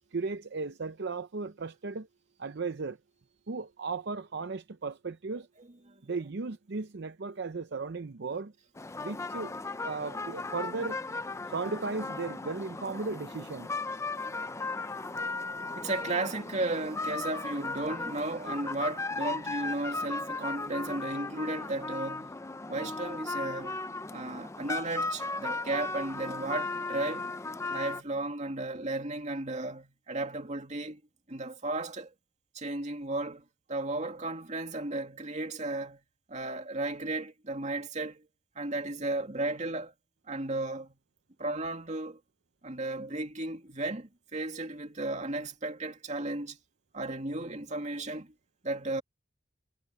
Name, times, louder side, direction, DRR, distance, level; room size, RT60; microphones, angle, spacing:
voice 1, 0.1-2.1 2.4-3.0 3.5-5.5 6.0-8.5 9.0-9.6 9.8-11.0 11.5-13.7, right 4 dB, 60° right, 0.6 m, -36 dB
sound 1, 8.8-28.0, left 3 dB, 15° left, 0.5 m, -36 dB
voice 2, 15.8-22.4 22.7-23.8 24.1-27.3 27.7-31.0 31.3-32.1 32.5-36.0 36.3-38.2 38.6-39.9 40.3-41.0 41.4-42.2 42.6-46.6 46.9-48.3 48.6-49.0, right 2 dB, 40° right, 2.5 m, -34 dB
head